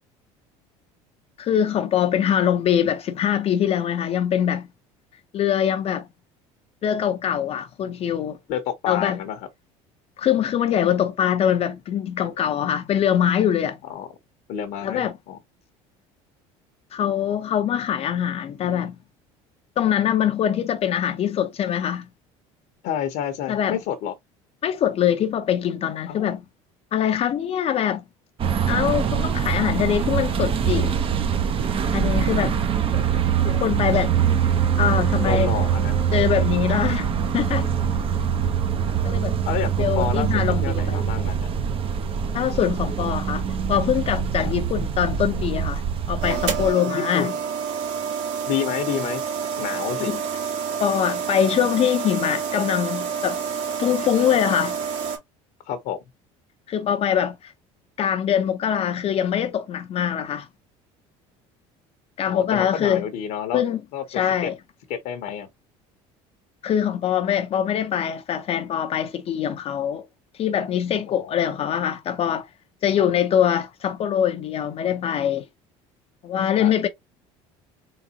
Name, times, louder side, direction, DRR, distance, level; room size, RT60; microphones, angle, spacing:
voice 1, 1.4-4.7 5.3-6.1 6.8-8.4 8.9-9.2 10.2-13.8 14.8-15.1 16.9-19.0 19.8-22.1 23.5-23.8 24.6-26.4 26.9-28.0 28.7-31.0 31.9-32.6 32.9-34.1 34.8-35.5 36.1-37.7 39.0-39.4 39.8-41.0 42.3-43.4 43.7-47.3 49.9-50.2 50.8-53.4 53.8-54.8 56.7-57.5 58.0-60.5 62.2-63.0 63.5-63.8 64.1-64.6 66.6-70.1 70.4-72.5 72.8-75.5 76.2-76.9, left 9 dB, 45° left, 0.6 m, -23 dB
voice 2, 8.5-9.5 13.9-14.1 14.5-15.4 22.8-24.1 26.1-26.3 35.2-36.0 39.4-40.3 40.6-41.5 44.4-44.5 46.8-47.4 48.5-49.2 49.6-50.1 55.7-56.0 62.3-63.6 63.9-64.0 64.4-64.5 64.9-65.5 71.1-71.3 76.6-76.7, left 9 dB, 70° left, 0.9 m, -29 dB
sound 1, 28.4-46.7, right 8 dB, 40° right, 0.7 m, -23 dB
Wind instrument woodwind instrument, 30.8-40.3, right 10 dB, 85° right, 2.1 m, -38 dB
sound 2, 46.2-55.2, right 7 dB, 60° right, 2.2 m, -28 dB
4.0 x 3.3 x 2.8 m
supercardioid pair, 100°, 14 cm